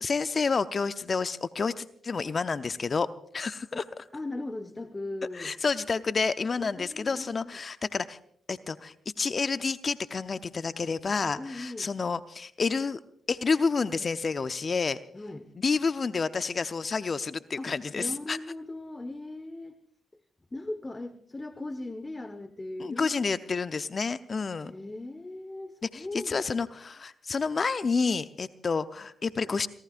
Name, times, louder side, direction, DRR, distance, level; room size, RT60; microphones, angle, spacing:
voice 1, 0.0-3.1 3.3-3.8 5.3-8.2 8.5-13.0 13.3-15.0 15.6-18.4 22.8-24.7 25.8-29.7, left 4 dB, 45° left, 13 dB, 0.7 m, -29 dB
voice 2, 4.1-5.5 6.6-7.6 11.3-11.9 15.1-15.5 17.6-19.8 20.5-23.2 24.6-26.4, left 2 dB, 25° left, 11 dB, 1.2 m, -38 dB
29.5 x 18.0 x 2.5 m, 0.63 s
hypercardioid pair, 40°, 0 cm